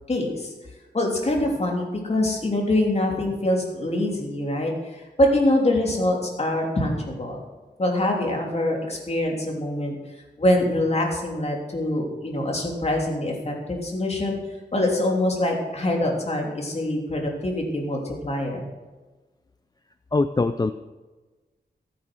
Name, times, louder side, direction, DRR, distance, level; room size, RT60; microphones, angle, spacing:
voice 1, 0.1-0.5 0.9-7.4 7.8-9.9 10.4-14.4 14.7-18.7, left 1 dB, 40° left, 0 dB, 3.2 m, -24 dB
voice 2, 20.1-20.7, left 3 dB, 25° left, 10 dB, 0.4 m, -22 dB
14.0 x 8.9 x 6.2 m, 1.2 s
wide cardioid pair, 115°, 17 cm